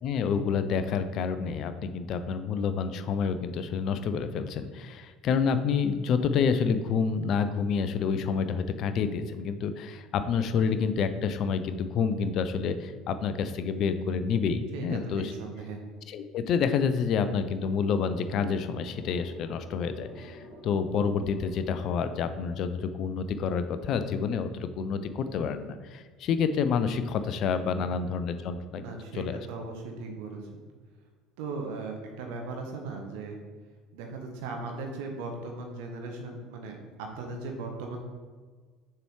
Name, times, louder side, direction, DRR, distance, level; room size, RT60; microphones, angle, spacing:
voice 1, 0.0-15.3 16.1-28.8 29.1-29.5, left 6 dB, 45° left, 10 dB, 0.4 m, -28 dB
voice 2, 14.7-15.8 28.8-30.5 31.4-33.3 33.9-38.0, right 3 dB, 60° right, 2 dB, 0.9 m, -38 dB
sound 1, 17.2-24.3, equal, 80° right, 1.7 m, -52 dB
6.8 x 5.6 x 3.1 m, 1.5 s
figure-of-eight pair, 65°, 0 cm